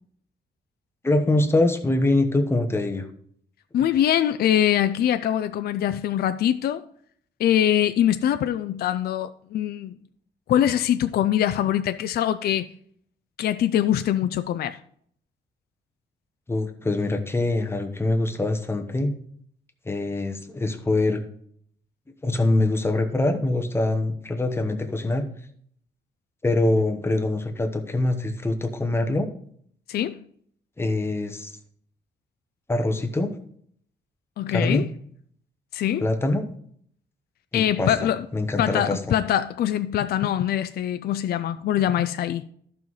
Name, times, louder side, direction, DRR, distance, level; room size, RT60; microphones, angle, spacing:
voice 1, 1.0-3.1 16.5-19.2 19.8-21.2 22.2-25.3 26.4-29.3 30.8-31.5 32.7-33.3 34.5-34.9 36.0-36.4 37.5-37.9 38.3-39.1, left 2 dB, 15° left, 0.9 m, -24 dB
voice 2, 3.7-6.8 7.4-10.0 10.5-12.7 13.4-14.8 29.9-30.2 34.4-34.9 35.7-36.1 37.5-38.3 38.6-42.4, left 10 dB, 60° left, 0.4 m, -23 dB
14.0 x 5.6 x 3.1 m
wide cardioid pair, 160°, 18 cm